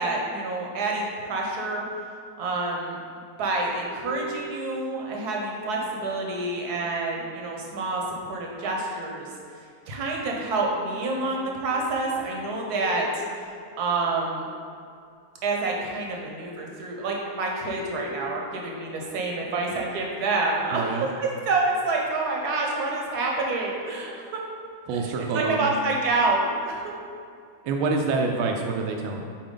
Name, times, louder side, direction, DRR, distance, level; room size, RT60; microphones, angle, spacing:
voice 1, 0.0-1.8 2.4-3.0 3.4-8.0 8.3-9.3 9.9-13.4 13.8-14.4 15.4-20.8 21.2-24.4 25.3-26.8, right 3 dB, 60° right, -1 dB, 1.2 m, -27 dB
sound 1, 3.8-5.7 10.1-14.5 15.9-22.1, left 1 dB, 75° left, 2.0 m, -43 dB
voice 2, 20.7-21.1 24.9-25.7 27.6-29.2, right 4 dB, 80° right, 2 dB, 1.3 m, -26 dB
7.2 x 4.5 x 3.8 m, 2.2 s
omnidirectional pair, 2.3 m